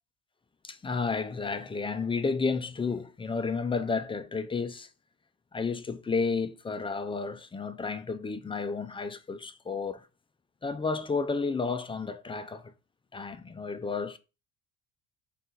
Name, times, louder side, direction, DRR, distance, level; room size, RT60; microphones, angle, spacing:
voice 1, 0.6-4.9 5.5-10.1 10.6-12.7 13.1-14.2, left 4 dB, 15° left, 0.3 m, -32 dB
3.9 x 2.8 x 3.7 m
supercardioid pair, 80°, 38 cm